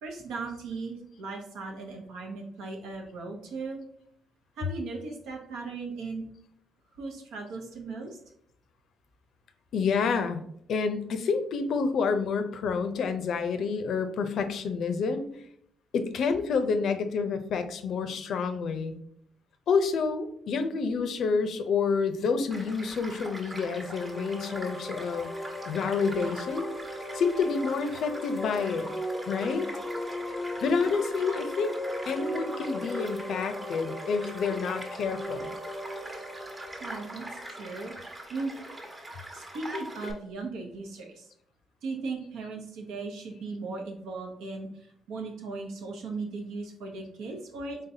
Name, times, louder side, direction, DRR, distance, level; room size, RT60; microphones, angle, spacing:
voice 1, 0.0-3.8 4.6-6.3 7.0-8.1 36.8-38.5 39.3-41.3 41.8-44.7 45.1-47.8, right 3 dB, 90° right, 1 dB, 0.9 m, -37 dB
voice 2, 9.7-10.4 10.7-15.3 15.9-19.0 19.7-25.3 25.7-26.7 27.1-28.9 29.3-29.7 30.6-31.7 32.1-35.6, left 5 dB, 70° left, 9 dB, 0.5 m, -28 dB
Child speech kid speaking / Stream / Car passing by, 22.5-40.1, right 1 dB, 30° right, 1.0 m, -43 dB
sound 1, 23.4-38.1, equal, 10° left, 0.5 m, -38 dB
4.0 x 3.6 x 2.7 m, 0.70 s
cardioid pair, 90°, 0 cm